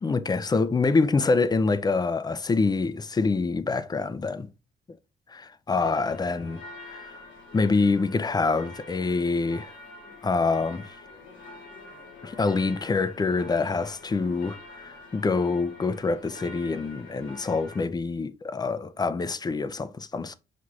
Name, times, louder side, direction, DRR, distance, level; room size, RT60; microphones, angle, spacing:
voice 1, 0.0-4.5 5.4-7.1 7.5-9.7 10.2-11.0 12.2-20.3, left 4 dB, 20° left, 0.4 m, -26 dB
sound 1, 5.8-17.9, left 2 dB, 70° left, 1.3 m, -46 dB
5.9 x 2.5 x 3.1 m
cardioid pair, 95°, 20 cm